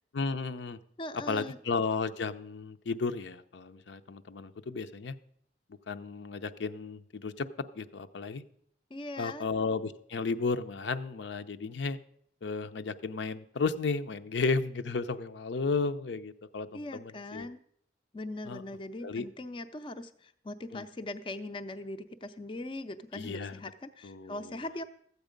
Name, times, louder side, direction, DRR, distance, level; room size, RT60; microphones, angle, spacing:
voice 1, 0.1-0.8 1.3-5.1 5.9-7.5 7.7-8.4 9.2-12.0 12.4-17.5 18.4-18.6 19.0-19.3 20.7-20.8 23.1-23.6 24.0-24.6, left 4 dB, 85° left, 10 dB, 0.6 m, -33 dB
voice 2, 1.0-1.6 8.9-9.5 16.7-17.6 18.1-24.8, left 2 dB, 30° left, 9 dB, 0.4 m, -40 dB
13.0 x 8.1 x 5.1 m, 0.66 s
head